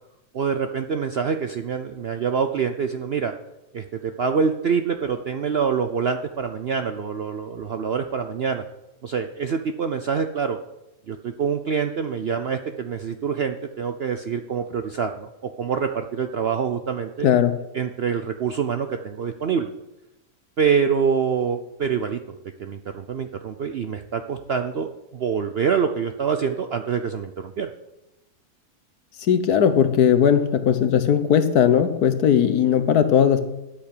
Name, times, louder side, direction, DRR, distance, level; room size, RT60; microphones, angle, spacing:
voice 1, 0.3-3.3 3.7-8.6 9.0-10.6 11.1-17.3 17.7-19.7 20.6-27.7, right 6 dB, 60° right, 7 dB, 0.6 m, -25 dB
voice 2, 17.2-17.6 29.3-33.4, left 8 dB, 75° left, 10 dB, 1.5 m, -18 dB
11.5 x 8.3 x 6.7 m, 0.95 s
omnidirectional pair, 1.7 m